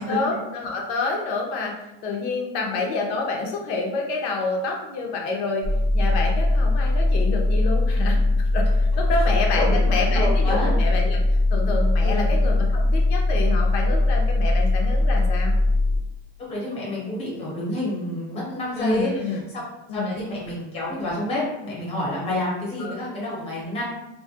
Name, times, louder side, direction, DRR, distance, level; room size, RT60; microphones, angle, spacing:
voice 1, 0.0-1.7 2.0-5.6 5.9-11.2 11.5-15.5 18.8-19.4 19.9-20.1 22.8-22.9, left 3 dB, 90° left, 1 dB, 0.6 m, -28 dB
sound 1, 5.6-16.0, left 2 dB, 35° right, 0.5 m, -20 dB
voice 2, 10.1-10.7 12.0-12.3 16.4-19.6 19.9-23.8, left 1 dB, 20° left, -5 dB, 0.7 m, -29 dB
2.2 x 2.1 x 2.7 m, 0.90 s
cardioid pair, 170°, 31 cm